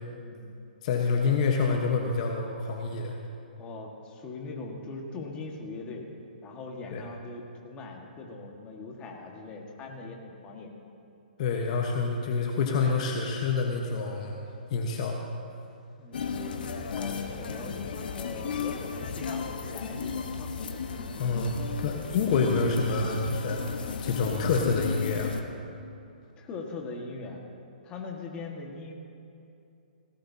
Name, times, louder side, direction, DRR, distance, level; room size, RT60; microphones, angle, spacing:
voice 1, 0.2-0.6 3.6-6.1 6.4-10.7 16.0-17.7 18.1-20.7 26.4-27.4 27.8-28.9, left 3 dB, 20° left, 0 dB, 1.7 m, -41 dB
voice 2, 0.8-3.2 6.9-7.0 11.4-14.4 14.7-15.2 21.2-21.5 21.8-23.6 24.0-25.3, left 4 dB, 45° left, 1 dB, 1.2 m, -27 dB
sound 1, 16.1-25.4, left 5 dB, 70° left, 1.3 m, -34 dB
18.5 x 16.5 x 2.8 m, 2.6 s
hypercardioid pair, 145°, 5 cm